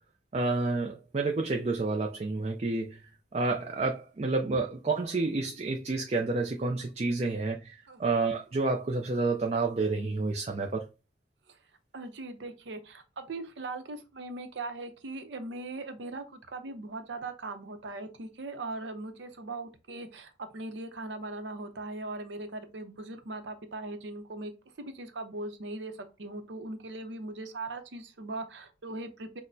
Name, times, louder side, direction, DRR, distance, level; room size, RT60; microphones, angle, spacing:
voice 1, 0.3-3.0 3.3-10.9, right 3 dB, 35° right, 0.4 m, -29 dB
voice 2, 11.9-24.5 24.8-29.4, right 2 dB, 80° right, 0.7 m, -40 dB
6.0 x 2.1 x 2.6 m
head